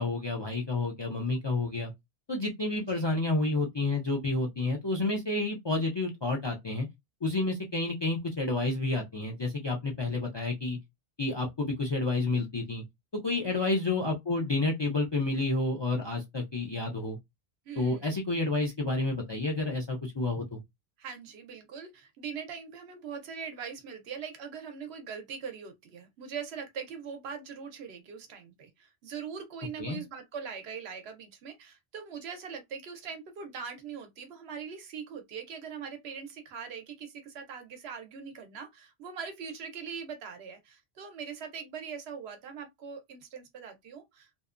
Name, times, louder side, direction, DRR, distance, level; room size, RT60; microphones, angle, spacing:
voice 1, 0.0-1.9 2.3-6.9 7.2-10.8 11.2-12.8 13.1-17.2 17.8-20.6 29.8-30.0, left 2 dB, 45° left, 0.3 m, -30 dB
voice 2, 17.7-18.1 21.0-44.3, right 6 dB, 90° right, 0.9 m, -41 dB
2.7 x 2.1 x 2.4 m
omnidirectional pair, 1.1 m